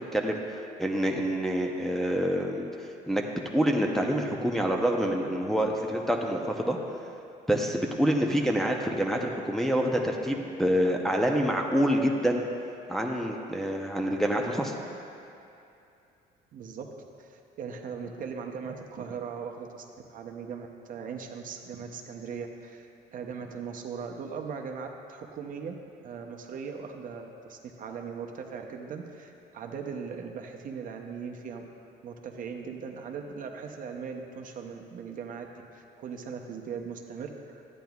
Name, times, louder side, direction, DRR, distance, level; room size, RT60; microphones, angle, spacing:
voice 1, 0.1-6.8 7.5-12.5 12.9-14.8, equal, ahead, 0 dB, 0.5 m, -27 dB
voice 2, 16.5-16.9 17.2-25.7 26.0-31.6 32.0-37.6, right 6 dB, 55° right, 2 dB, 0.7 m, -39 dB
10.5 x 9.1 x 2.3 m, 2.7 s
cardioid pair, 110°, 17 cm